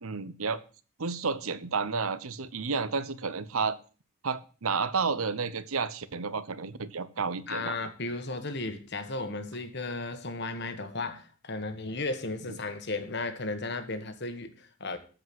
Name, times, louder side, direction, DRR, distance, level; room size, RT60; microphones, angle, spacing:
voice 1, 0.0-0.6 1.0-3.8 4.2-7.8 12.5-12.6, right 5 dB, 75° right, 0.9 m, -31 dB
voice 2, 7.5-15.0, left 3 dB, 50° left, 1.5 m, -35 dB
14.0 x 5.1 x 7.7 m
head